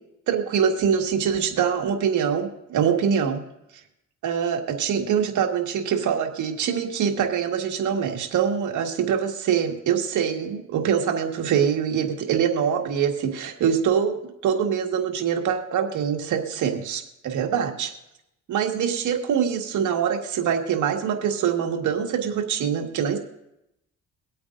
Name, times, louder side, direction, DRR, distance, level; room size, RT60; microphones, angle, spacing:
voice 1, 0.3-3.4 4.2-14.2 14.4-17.9 18.5-23.2, right 8 dB, 75° right, 2 dB, 1.8 m, -24 dB
23.5 x 8.6 x 2.6 m, 0.84 s
cardioid pair, 90°, 30 cm